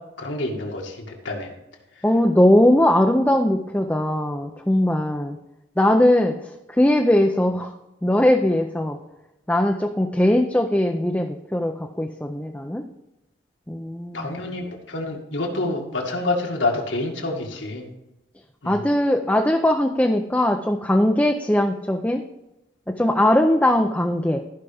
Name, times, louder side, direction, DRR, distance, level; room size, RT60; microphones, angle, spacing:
voice 1, 0.2-1.5 2.0-2.1 14.1-17.9 18.6-18.8, left 2 dB, 75° left, 0 dB, 2.1 m, -27 dB
voice 2, 2.0-5.4 5.8-7.7 8.0-9.0 9.5-12.9 13.7-14.3 18.6-22.2 22.9-24.4, left 1 dB, 10° left, 3 dB, 0.5 m, -20 dB
14.5 x 5.7 x 3.4 m, 0.93 s
head